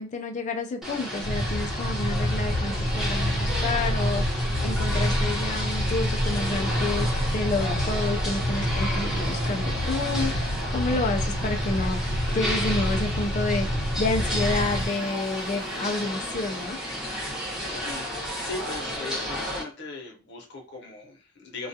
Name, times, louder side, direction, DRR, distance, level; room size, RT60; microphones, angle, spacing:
voice 1, 0.0-16.8, left 3 dB, 40° left, 0.4 m, -30 dB
sound 1, 0.8-19.6, equal, 5° right, 0.8 m, -32 dB
sound 2, 1.2-14.9, equal, 90° left, 0.8 m, -27 dB
sound 3, 8.7-11.0 11.3-13.4 14.0-16.3, right 1 dB, 40° right, 0.5 m, -43 dB
voice 2, 17.7-21.7, left 3 dB, 60° left, 0.8 m, -39 dB
2.3 x 2.2 x 2.7 m
head